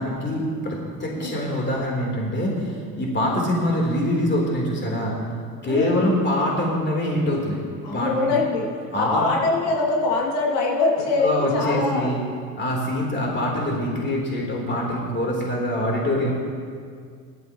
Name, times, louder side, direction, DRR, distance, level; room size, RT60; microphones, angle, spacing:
voice 1, 0.0-5.1 5.6-7.6 7.9-8.3 8.9-9.3 11.2-12.2 12.5-16.3, left 1 dB, 25° left, -2 dB, 3.6 m, -24 dB
voice 2, 5.6-6.2 7.8-8.7 9.0-12.2, left 3 dB, 70° left, -2 dB, 2.7 m, -23 dB
17.0 x 12.5 x 3.1 m, 2.1 s
hypercardioid pair, 65°, 48 cm